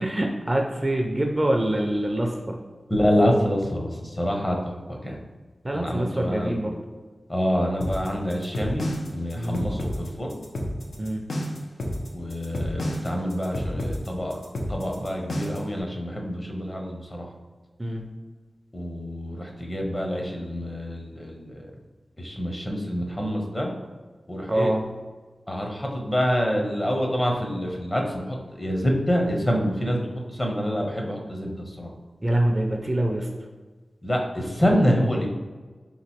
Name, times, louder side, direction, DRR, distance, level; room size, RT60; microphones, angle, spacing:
voice 1, 0.0-2.6 5.6-6.8 9.4-9.7 11.0-11.2 17.8-18.0 24.5-24.8 32.2-33.3, right 1 dB, 25° right, 2 dB, 0.4 m, -25 dB
voice 2, 2.9-5.2 5.7-6.5 7.3-10.4 12.1-14.4 14.7-17.3 18.7-21.7 22.2-23.7 24.3-24.7 25.5-31.9 34.0-35.3, equal, 25° left, 1 dB, 0.8 m, -26 dB
sound 1, 7.8-15.7, equal, 85° left, 0.7 m, -30 dB
3.8 x 3.0 x 4.2 m, 1.4 s
wide cardioid pair, 95°, 0 cm